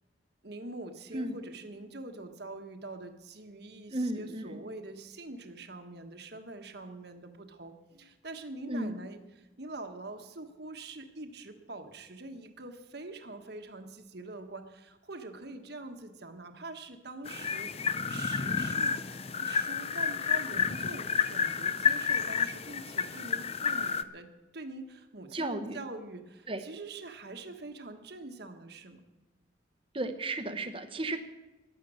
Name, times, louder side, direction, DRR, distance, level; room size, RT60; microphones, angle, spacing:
voice 1, 0.4-19.0 19.4-24.3 24.5-29.0, right 2 dB, 55° right, 6 dB, 1.4 m, -44 dB
voice 2, 3.9-4.7 8.7-9.0 25.3-25.8 26.5-26.6 29.9-31.2, right 1 dB, 30° right, 8 dB, 1.1 m, -34 dB
sound 1, 17.3-24.0, left 6 dB, 30° left, 0.5 m, -30 dB
15.0 x 11.0 x 6.4 m, 1.1 s
head